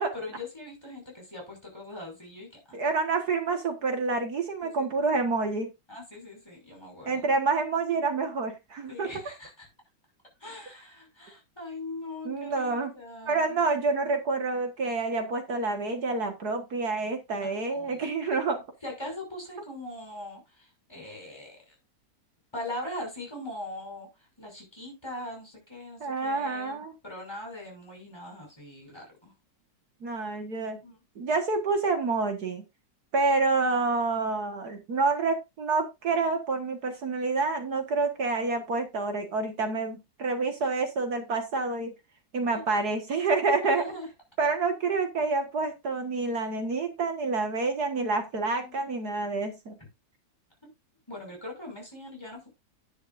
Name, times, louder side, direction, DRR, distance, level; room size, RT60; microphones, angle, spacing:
voice 1, 0.0-2.8 4.6-5.0 5.9-7.4 8.9-9.7 10.4-13.6 17.4-18.1 18.8-21.7 22.5-29.3 30.8-31.0 42.5-42.6 43.6-44.1 48.6-49.0 49.8-49.9 51.1-52.5, left 1 dB, 15° left, 6.1 m, -41 dB
voice 2, 2.7-5.7 7.1-9.1 12.3-12.9 13.3-18.6 26.0-26.9 30.0-30.8 31.2-32.6 33.1-41.9 42.3-43.8 44.4-49.7, right 3 dB, 60° right, 2.0 m, -28 dB
10.5 x 10.5 x 2.6 m
omnidirectional pair, 2.0 m